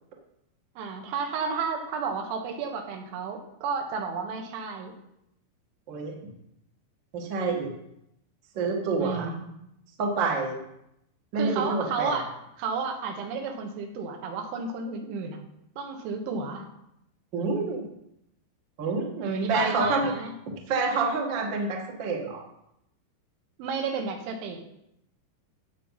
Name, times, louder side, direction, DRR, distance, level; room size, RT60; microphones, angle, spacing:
voice 1, 0.8-5.0 9.0-9.5 11.4-12.3 12.6-15.4 15.8-16.7 19.2-20.4 23.6-24.6, right 5 dB, 80° right, 4 dB, 3.7 m, -32 dB
voice 2, 7.1-7.7 8.5-9.3 10.0-10.6 11.3-12.2 17.3-17.9 18.8-20.1 20.7-22.4, right 3 dB, 65° right, 0 dB, 1.1 m, -27 dB
15.0 x 8.3 x 4.1 m, 0.81 s
omnidirectional pair, 5.3 m